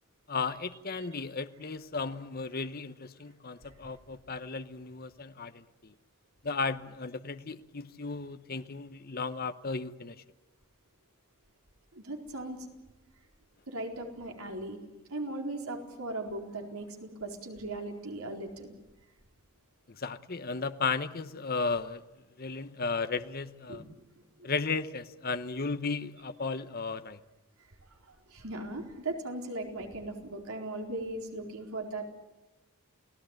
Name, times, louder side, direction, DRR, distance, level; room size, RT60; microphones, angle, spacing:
voice 1, 0.3-5.9 6.4-10.2 20.0-22.0 22.4-23.8 24.4-27.2, left 4 dB, 40° left, 11 dB, 0.9 m, -35 dB
voice 2, 11.9-12.7 13.7-14.8 15.1-18.7 23.7-23.8 24.4-24.5 27.9-32.1, right 2 dB, 75° right, 2 dB, 4.3 m, -38 dB
29.5 x 17.5 x 9.1 m, 1.0 s
head